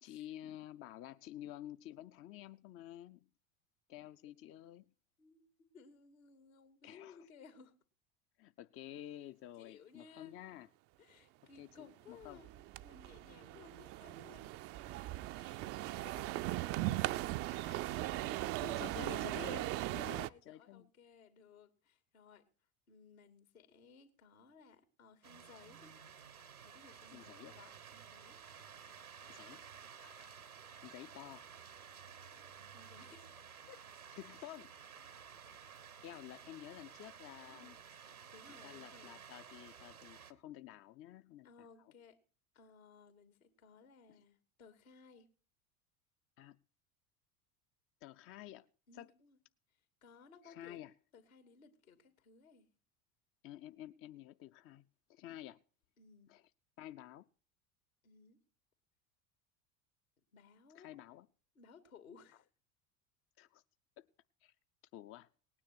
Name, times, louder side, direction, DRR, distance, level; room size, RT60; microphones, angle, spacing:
voice 1, 0.0-3.3 3.9-4.9 6.8-7.3 8.4-10.7 11.6-12.4 15.3-15.4 17.5-17.8 18.6-19.7 19.9-20.9 27.1-27.6 29.3-29.6 30.0-30.4 30.8-31.5 34.2-34.7 36.0-37.7 38.5-41.7 46.4-46.6 48.0-48.7 48.9-49.1 50.4-50.9 53.4-54.8 55.1-55.6 56.3-56.4 56.8-57.3 60.7-61.3 63.4-63.6 64.0-64.1 64.4-64.5 64.9-65.3, left 12 dB, 30° left, 0.6 m, -51 dB
voice 2, 5.7-7.7 9.6-10.3 11.0-14.9 15.3-15.6 15.9-16.4 17.9-19.0 19.6-22.4 22.9-26.0 26.6-28.4 32.7-33.8 37.4-37.8 38.0-39.2 41.4-42.2 42.5-45.3 48.9-49.4 50.0-50.8 51.1-52.7 56.0-56.3 58.0-58.4 60.3-61.0 61.5-62.5, left 5 dB, 75° left, 2.6 m, -60 dB
sound 1, 12.2-20.3, right 16 dB, 35° right, 0.5 m, -39 dB
sound 2, 25.2-40.3, right 7 dB, 85° right, 1.3 m, -54 dB
19.0 x 9.7 x 4.3 m
figure-of-eight pair, 75°, 43 cm